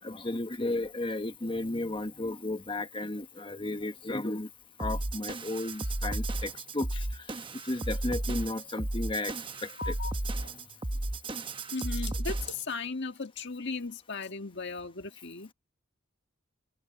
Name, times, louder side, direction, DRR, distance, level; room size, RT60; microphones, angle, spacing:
voice 1, 0.0-4.5 4.8-10.0 10.3-10.5, left 2 dB, 25° left, 1.3 m, -34 dB
sound 1, 4.8-12.7, right 1 dB, 25° right, 1.0 m, -34 dB
voice 2, 9.8-10.1 10.4-10.5 11.7-15.5, left 4 dB, 60° left, 1.7 m, -37 dB
head